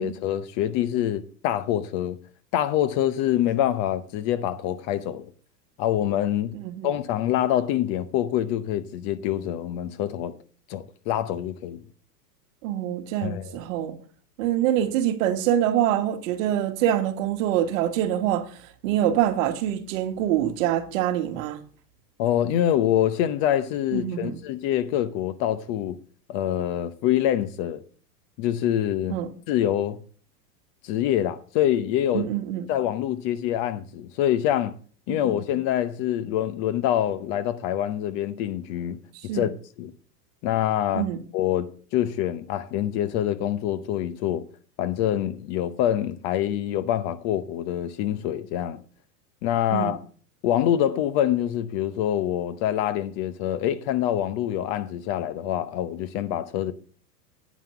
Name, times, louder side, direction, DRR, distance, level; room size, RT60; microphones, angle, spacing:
voice 1, 0.0-2.2 2.5-5.3 5.8-6.5 6.8-10.3 10.7-11.8 13.2-13.6 22.2-26.0 26.3-27.8 28.4-29.2 29.5-30.0 30.8-32.2 32.7-34.7 35.1-39.0 39.3-39.5 39.8-39.9 40.4-41.1 41.3-44.4 44.8-48.8 49.4-50.0 50.4-56.7, left 11 dB, 35° left, 0.7 m, -25 dB
voice 2, 6.5-6.9 12.6-14.0 14.4-18.6 18.8-21.6 23.9-24.4 29.1-29.3 32.1-32.7 35.1-35.2 39.3-39.5 40.9-41.2 49.7-50.0, right 11 dB, 50° right, 1.5 m, -25 dB
9.5 x 5.7 x 6.8 m
hypercardioid pair, 130°, 49 cm